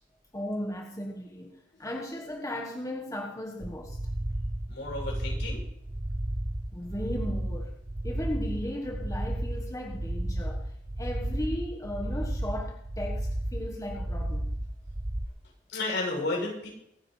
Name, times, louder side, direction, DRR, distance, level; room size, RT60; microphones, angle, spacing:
voice 1, 0.3-4.0 6.7-7.8 8.0-10.7 11.0-14.5, left 1 dB, 20° left, 1 dB, 1.3 m, -36 dB
sound 1, 3.6-15.3, right 1 dB, 25° right, 0.7 m, -33 dB
voice 2, 4.7-5.6 15.7-16.7, left 2 dB, 75° left, -1 dB, 7.0 m, -32 dB
24.5 x 9.6 x 3.3 m, 0.77 s
head